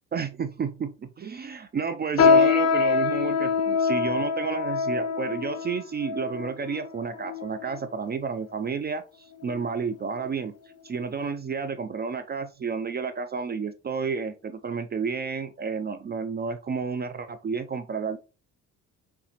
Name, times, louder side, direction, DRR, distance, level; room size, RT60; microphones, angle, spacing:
voice 1, 0.1-10.5 10.8-18.2, right 5 dB, 35° right, 11 dB, 0.4 m, -31 dB
sound 1, 2.2-7.9 8.5-8.7 9.4-9.7 10.1-10.3 11.0-11.1, left 5 dB, 55° left, 0.8 m, -24 dB
5.5 x 3.3 x 2.9 m, 0.32 s
cardioid pair, 90°, 30 cm